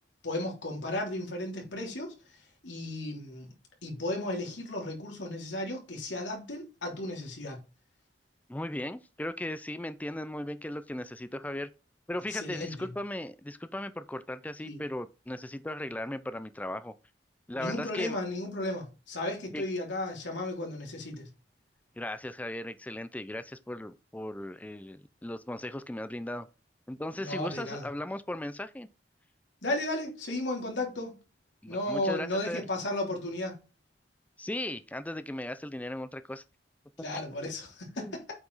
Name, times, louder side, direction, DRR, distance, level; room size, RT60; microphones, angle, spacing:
voice 1, 0.2-2.1 2.6-3.5 3.8-7.6 12.3-12.9 14.6-14.8 17.5-21.3 27.2-27.8 29.6-31.2 31.7-33.5 37.0-38.2, left 1 dB, 90° left, 3.3 m, -34 dB
voice 2, 8.5-11.7 12.1-16.9 17.5-18.2 19.5-19.6 22.0-26.5 26.9-28.9 31.6-32.6 34.4-36.4 38.0-38.2, left 1 dB, 10° left, 0.4 m, -37 dB
8.5 x 5.1 x 4.0 m
head